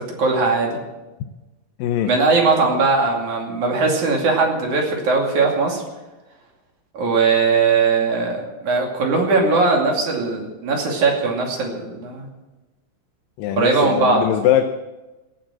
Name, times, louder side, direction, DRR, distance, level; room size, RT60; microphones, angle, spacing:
voice 1, 0.2-0.8 2.0-5.8 6.9-12.3 13.6-14.2, right 4 dB, 60° right, 0 dB, 4.0 m, -19 dB
voice 2, 1.8-2.1 13.4-14.8, left 11 dB, 85° left, 7 dB, 2.4 m, -21 dB
17.0 x 8.9 x 7.5 m, 1.1 s
omnidirectional pair, 3.9 m